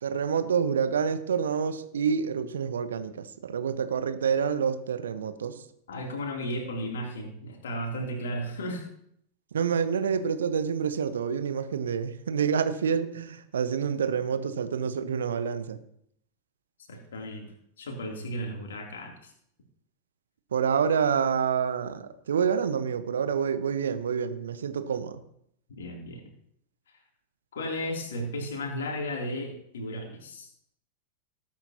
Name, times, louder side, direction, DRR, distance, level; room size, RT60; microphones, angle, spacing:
voice 1, 0.0-5.6 9.5-15.8 20.5-25.2, right 7 dB, 65° right, 10 dB, 1.0 m, -28 dB
voice 2, 5.9-8.9 16.9-17.5 17.8-19.3 25.7-26.2 27.5-30.5, equal, 65° left, 1 dB, 3.0 m, -34 dB
19.0 x 8.7 x 2.9 m, 0.71 s
figure-of-eight pair, 90°, 0 cm